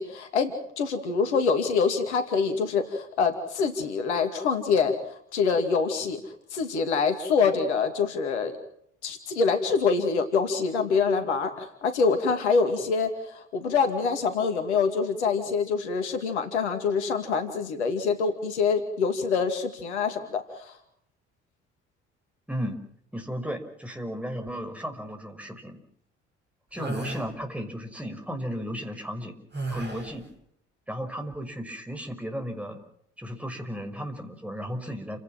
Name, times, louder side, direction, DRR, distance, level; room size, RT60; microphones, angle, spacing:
voice 1, 0.0-5.0 5.3-6.2 6.5-8.5 9.0-20.7, left 5 dB, 75° left, 7 dB, 2.4 m, -25 dB
voice 2, 22.5-22.8 23.1-25.8 26.7-29.3 29.7-30.2 30.9-32.8 33.2-35.2, equal, 5° right, 5 dB, 5.9 m, -34 dB
sound 1, 26.8-27.3 29.5-30.2, right 2 dB, 30° right, 7.9 m, -33 dB
29.5 x 17.0 x 7.3 m, 0.71 s
figure-of-eight pair, 50°, 34 cm